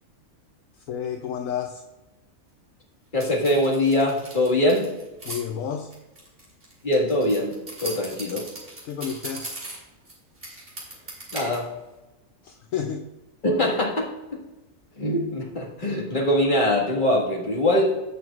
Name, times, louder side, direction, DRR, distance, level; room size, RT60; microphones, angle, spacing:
voice 1, 0.7-1.8 5.2-5.9 8.8-9.5 12.4-13.0, left 8 dB, 70° left, 4 dB, 1.0 m, -31 dB
voice 2, 3.1-4.9 6.8-8.5 11.3-11.7 13.4-14.4 15.0-17.9, left 1 dB, 35° left, -2 dB, 1.9 m, -23 dB
sound 1, 3.2-5.4 5.9-10.1 10.4-11.6, right 1 dB, 40° right, 3.0 m, -38 dB
16.5 x 6.1 x 2.4 m, 1.1 s
omnidirectional pair, 1.5 m